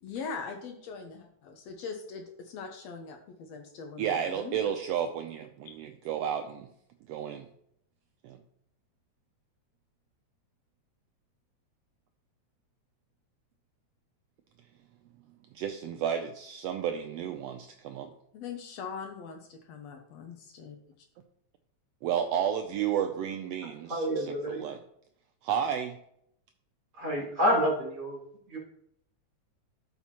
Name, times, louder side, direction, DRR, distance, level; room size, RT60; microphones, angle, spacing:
voice 1, 0.0-4.6 5.7-5.8 18.3-20.8, left 5 dB, 70° left, 4 dB, 1.9 m, -41 dB
voice 2, 4.0-6.7 7.1-7.5 8.2-8.4 15.5-18.1 22.0-24.8 25.4-26.0, right 8 dB, 85° right, 6 dB, 1.4 m, -32 dB
voice 3, 23.9-24.6 27.0-28.2 28.5-28.6, equal, 35° right, -4 dB, 3.6 m, -28 dB
12.5 x 5.8 x 3.0 m, 0.72 s
omnidirectional pair, 3.4 m